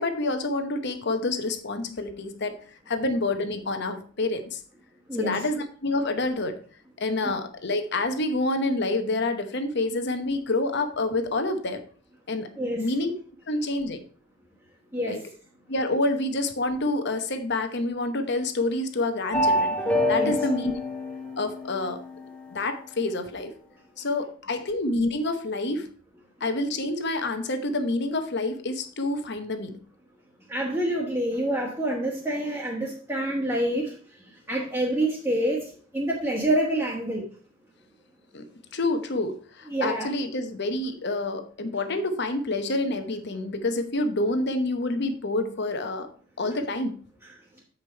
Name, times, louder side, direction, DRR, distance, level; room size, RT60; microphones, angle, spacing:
voice 1, 0.0-2.6 2.9-4.6 5.2-6.6 7.0-11.8 12.3-12.5 12.7-13.1 13.5-14.0 15.1-15.2 15.7-19.8 20.1-20.7 21.4-22.0 22.5-23.5 24.0-25.9 26.4-29.8 38.3-38.5 38.7-46.1 46.4-47.0, left 2 dB, 55° left, 8 dB, 1.0 m, -28 dB
voice 2, 5.1-5.4 12.6-12.9 14.9-15.2 20.2-20.3 30.5-33.9 34.5-37.3 39.7-40.1, right 1 dB, 15° right, -4 dB, 1.4 m, -27 dB
sound 1, 19.3-22.3, left 1 dB, 5° left, 0.9 m, -26 dB
8.1 x 5.0 x 4.5 m, 0.43 s
head